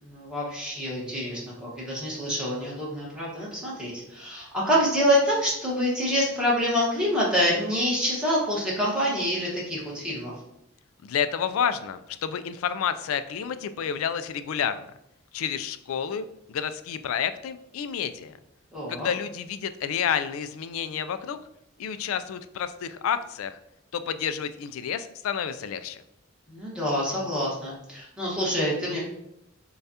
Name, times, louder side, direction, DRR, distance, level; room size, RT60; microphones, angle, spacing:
voice 1, 0.0-10.3 18.7-19.1 26.5-29.0, equal, 5° right, -6 dB, 1.2 m, -26 dB
voice 2, 11.0-14.9 15.3-18.3 18.9-21.4 21.8-23.6 23.9-26.0, left 8 dB, 90° left, 12 dB, 0.3 m, -30 dB
6.6 x 2.3 x 2.8 m, 0.82 s
head